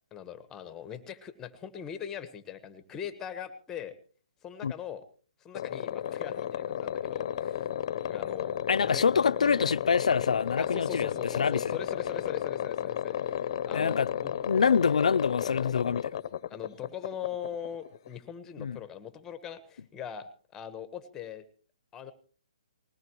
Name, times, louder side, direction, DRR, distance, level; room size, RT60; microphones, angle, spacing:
voice 1, 0.1-3.9 4.4-5.0 5.4-7.7 8.1-8.6 8.8-9.1 10.6-14.3 16.5-21.4 21.9-22.1, left 9 dB, 15° left, 1.3 m, -41 dB
sound 1, 5.6-18.2, left 10 dB, 45° left, 0.9 m, -33 dB
voice 2, 8.7-11.8 13.7-14.1 14.5-16.1 18.6-18.8, left 6 dB, 80° left, 0.6 m, -26 dB
20.5 x 17.5 x 3.1 m
hypercardioid pair, 155°, 4 cm